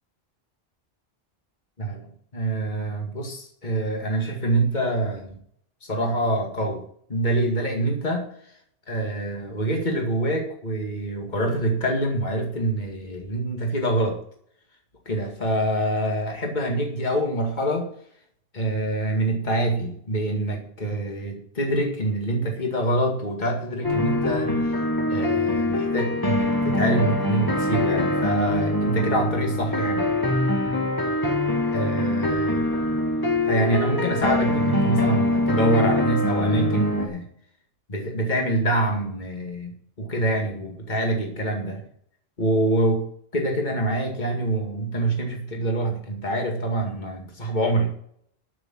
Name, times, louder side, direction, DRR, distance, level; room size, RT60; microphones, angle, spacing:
voice 1, 1.8-5.4 5.8-6.8 7.1-8.6 8.9-14.2 15.1-17.9 18.5-24.8 25.1-30.1 31.7-32.6 33.4-37.3 37.9-39.7 40.0-41.8 42.4-43.1 43.3-47.9, right 1 dB, 45° left, 1 dB, 2.3 m, -25 dB
sound 1, 23.8-37.1, left 1 dB, 20° left, 1.7 m, -24 dB
11.5 x 6.7 x 7.4 m, 0.64 s
omnidirectional pair, 1.0 m